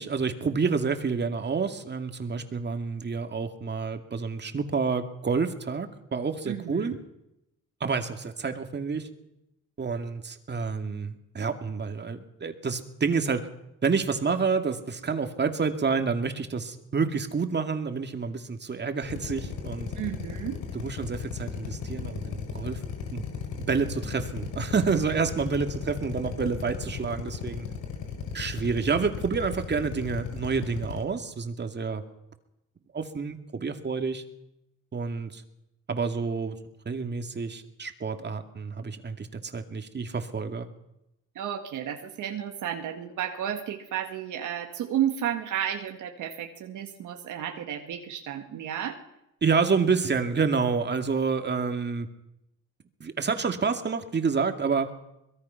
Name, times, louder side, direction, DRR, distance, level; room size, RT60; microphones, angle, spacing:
voice 1, 0.0-6.9 7.8-9.1 9.8-13.5 13.8-19.9 20.7-22.8 23.1-23.3 23.6-27.7 28.3-32.0 32.9-34.2 34.9-35.4 35.9-36.6 36.9-40.7 49.4-52.1 53.0-54.9, right 5 dB, 35° right, 6 dB, 2.4 m, -28 dB
voice 2, 6.5-7.0 20.0-20.6 41.4-49.0, right 10 dB, 80° right, 4 dB, 1.9 m, -32 dB
Drill, 19.0-31.0, left 6 dB, 80° left, 4.3 m, -36 dB
24.0 x 21.5 x 5.8 m, 0.86 s
cardioid pair, 90°, 30 cm